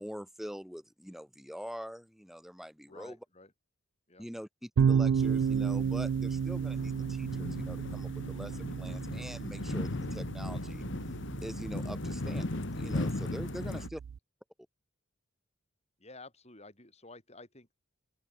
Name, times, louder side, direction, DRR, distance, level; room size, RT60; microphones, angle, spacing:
voice 1, 0.0-3.2 4.2-10.8 11.4-14.0, equal, ahead, 2.6 m, -44 dB
voice 2, 2.9-3.5 4.1-4.3 13.6-13.8 16.0-17.7, left 2 dB, 30° left, 7.7 m, -52 dB
sound 1, 4.8-14.2, right 7 dB, 70° right, 0.3 m, -33 dB
sound 2, 5.2-13.9, left 2 dB, 60° left, 1.3 m, -38 dB
open air
head